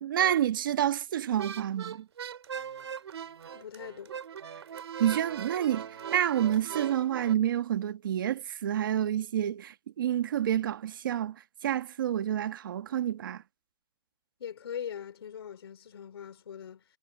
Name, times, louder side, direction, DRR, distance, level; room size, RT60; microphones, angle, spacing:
voice 1, 0.0-2.0 5.0-5.9 6.1-11.3 11.6-13.4, right 11 dB, 55° right, 1.4 m, -28 dB
sound 1, 1.3-7.3, right 8 dB, 85° right, 3.6 m, -40 dB
voice 2, 3.5-4.2 14.4-16.8, left 8 dB, 70° left, 3.8 m, -41 dB
hypercardioid pair, 175°, 13 cm